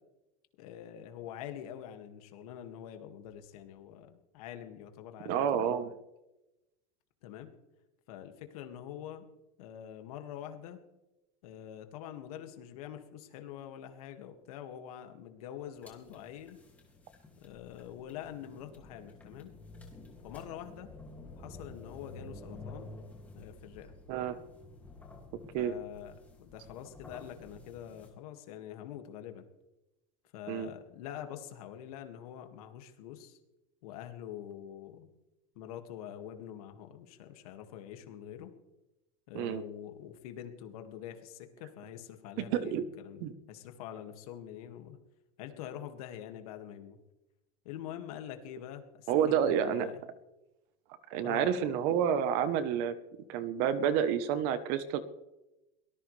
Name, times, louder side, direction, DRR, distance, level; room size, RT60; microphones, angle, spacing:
voice 1, 0.6-5.7 7.2-7.5 8.1-9.3 9.6-10.8 11.4-16.6 17.4-19.5 20.2-20.9 21.4-22.9 23.3-23.9 25.6-29.5 30.3-33.4 33.8-35.1 35.6-38.5 39.3-45.0 45.4-47.0 47.6-50.0 51.2-51.6, left 10 dB, 65° left, 6 dB, 2.2 m, -45 dB
voice 2, 5.2-5.9 24.1-24.4 25.5-25.8 30.5-30.7 39.3-39.6 42.4-42.8 43.2-43.3 49.1-49.9 51.1-52.9 53.3-55.0, right 8 dB, 40° right, 12 dB, 1.1 m, -29 dB
sound 1, 15.7-28.1, left 2 dB, 5° left, 2.5 m, -51 dB
23.0 x 18.5 x 3.4 m, 0.99 s
supercardioid pair, 180°, 20 cm